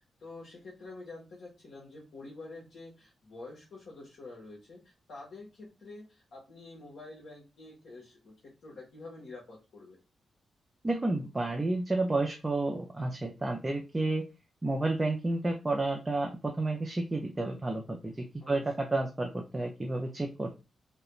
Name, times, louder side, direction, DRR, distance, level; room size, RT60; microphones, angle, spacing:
voice 1, 0.2-8.3 8.6-10.0 18.4-18.7, left 2 dB, 70° left, -5 dB, 0.9 m, -48 dB
voice 2, 10.8-14.2 14.6-20.6, right 2 dB, 20° right, 2 dB, 0.4 m, -31 dB
2.4 x 2.1 x 2.9 m, 0.29 s
cardioid pair, 115°, 0 cm